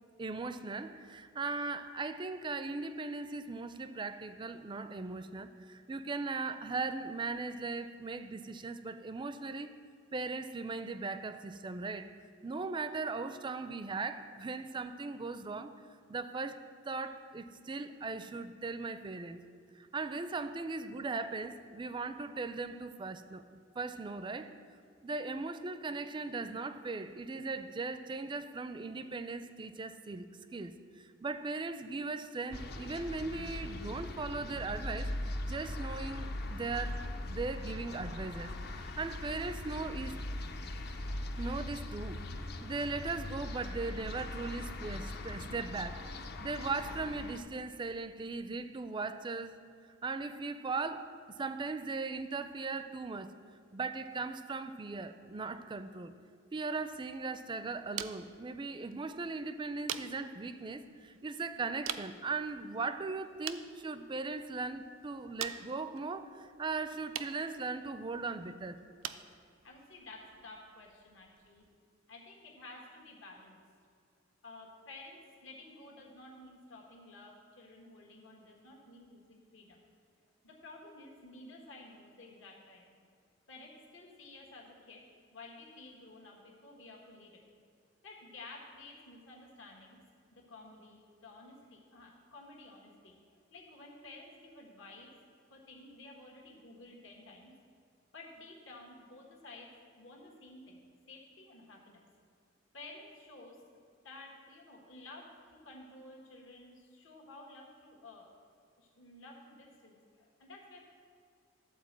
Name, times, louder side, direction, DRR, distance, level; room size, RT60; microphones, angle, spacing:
voice 1, 0.2-9.7 10.1-12.1 12.4-15.7 16.1-19.4 19.7-24.5 25.0-35.1 35.5-40.2 41.4-42.2 42.6-49.6 50.0-53.3 53.7-56.1 56.5-68.8, right 3 dB, 25° right, 11 dB, 0.4 m, -38 dB
sound 1, 32.5-47.4, left 1 dB, 55° left, 0.6 m, -40 dB
sound 2, 56.7-71.8, right 10 dB, 90° right, 0.4 m, -47 dB
voice 2, 69.6-71.7 72.1-73.6 74.4-79.8 80.4-83.0 83.5-87.6 88.0-90.0 90.3-93.2 93.5-95.1 95.5-97.5 98.1-102.0 102.7-103.6 104.0-108.3 108.8-110.8, left 2 dB, 75° left, -1 dB, 1.5 m, -53 dB
12.0 x 4.3 x 7.4 m, 2.3 s
head